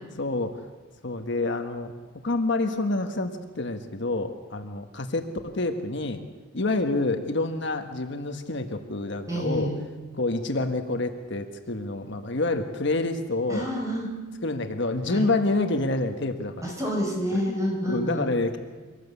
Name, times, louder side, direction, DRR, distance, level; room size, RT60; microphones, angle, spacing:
voice 1, 0.2-0.6 1.0-1.9 2.2-6.2 6.5-9.7 10.2-13.7 14.4-16.7 17.3-18.6, left 2 dB, 55° left, 6 dB, 1.4 m, -28 dB
voice 2, 9.3-9.7 13.5-14.2 15.1-15.3 16.6-18.3, equal, 15° right, 1 dB, 4.7 m, -28 dB
24.0 x 18.0 x 8.3 m, 1.4 s
head